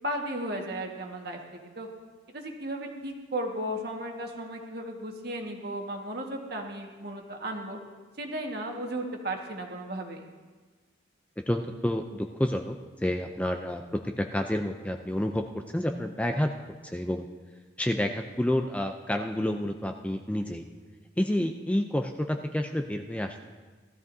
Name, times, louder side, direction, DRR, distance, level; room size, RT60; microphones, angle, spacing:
voice 1, 0.0-1.4 1.7-1.9 2.3-7.8 8.2-10.2, right 1 dB, 55° right, 2 dB, 1.6 m, -35 dB
voice 2, 11.5-15.4 15.7-16.5 16.9-17.3 17.8-20.6 21.2-23.4, left 1 dB, 5° left, 5 dB, 0.4 m, -29 dB
17.5 x 13.5 x 2.7 m, 1.4 s
head